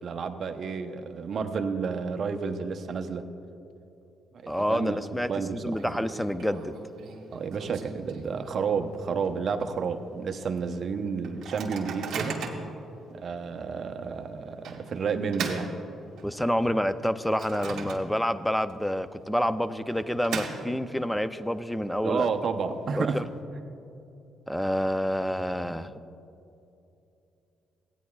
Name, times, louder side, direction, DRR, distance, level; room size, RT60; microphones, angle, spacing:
voice 1, 0.0-3.2 4.3-5.0 5.3-5.9 7.3-12.4 13.2-15.7 22.0-23.2, right 5 dB, 55° right, 6 dB, 0.7 m, -31 dB
voice 2, 4.5-6.8 16.2-22.3 23.0-23.2 24.5-25.9, equal, 5° left, 12 dB, 0.4 m, -28 dB
Microwave oven, 4.5-5.0 5.3-5.4 5.7-8.8 9.2-9.3 9.6-9.9 10.4-10.5 11.2-12.8 13.4-13.5 14.6-16.5 16.9-18.4 18.7-18.8 19.7-21.1, right 5 dB, 75° right, 1.4 m, -38 dB
16.5 x 9.4 x 2.3 m, 2.8 s
cardioid pair, 90°, 0 cm